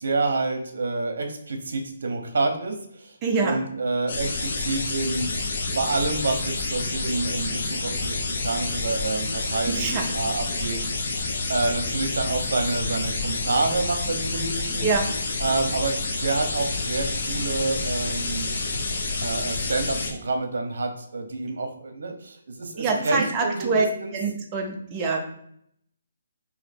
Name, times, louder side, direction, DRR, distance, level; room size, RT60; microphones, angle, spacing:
voice 1, 0.0-3.1 3.4-5.3 5.7-11.2 11.5-14.9 15.4-18.5 19.2-24.1, right 3 dB, 70° right, 4 dB, 0.8 m, -28 dB
voice 2, 3.2-3.6 9.7-10.1 14.8-15.1 22.8-23.9 24.1-25.2, right 4 dB, 20° right, 1 dB, 0.5 m, -25 dB
sound 1, 4.1-20.1, left 3 dB, 50° left, 0.7 m, -28 dB
3.2 x 2.8 x 4.2 m, 0.71 s
hypercardioid pair, 170°, 0 cm